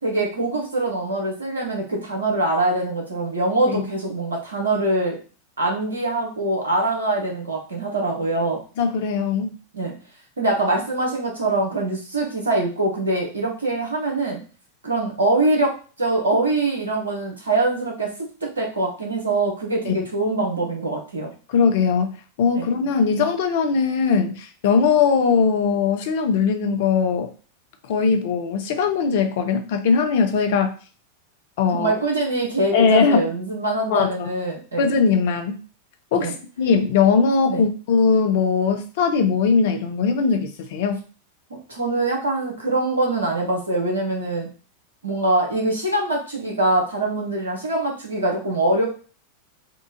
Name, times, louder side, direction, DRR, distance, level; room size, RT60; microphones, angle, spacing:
voice 1, 0.0-5.2 5.6-8.6 9.7-9.9 10.4-14.4 14.8-18.1 18.6-21.3 22.6-22.7 31.7-34.9 36.1-36.3 37.5-37.6 41.5-44.5 45.0-48.8, right 2 dB, 75° right, 0 dB, 1.2 m, -23 dB
voice 2, 8.8-9.5 19.9-20.0 21.5-27.3 27.9-30.7 31.6-32.0 32.7-33.3 33.9-34.3 34.8-35.6 36.1-41.0, left 5 dB, 50° left, 6 dB, 0.6 m, -20 dB
3.7 x 2.5 x 3.9 m, 0.37 s
figure-of-eight pair, 90°, 0 cm